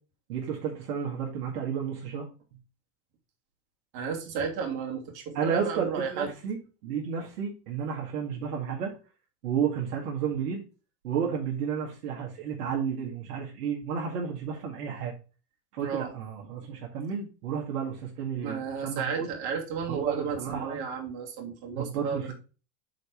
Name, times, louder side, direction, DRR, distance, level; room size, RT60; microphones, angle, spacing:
voice 1, 0.3-2.3 5.3-8.9 9.4-10.6 11.0-15.1 15.7-19.3 19.9-20.8 21.8-22.3, right 7 dB, 75° right, -1 dB, 2.0 m, -32 dB
voice 2, 3.9-6.3 15.8-16.1 18.4-22.3, right 6 dB, 50° right, 0 dB, 2.7 m, -33 dB
6.4 x 4.4 x 5.0 m, 0.34 s
hypercardioid pair, 110°, 47 cm